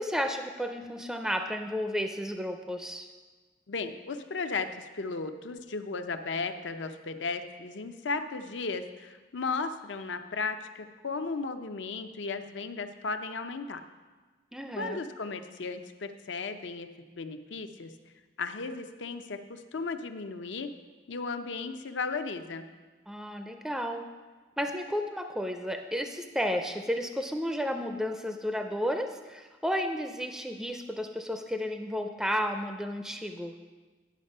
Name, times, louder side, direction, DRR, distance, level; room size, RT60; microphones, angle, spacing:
voice 1, 0.0-3.1 14.5-15.0 23.1-24.1 24.6-33.5, equal, ahead, 5 dB, 0.4 m, -32 dB
voice 2, 3.7-13.8 14.8-16.9 17.2-17.9 18.4-20.7 21.1-22.7, left 4 dB, 80° left, 8 dB, 0.6 m, -35 dB
10.5 x 6.6 x 5.4 m, 1.3 s
head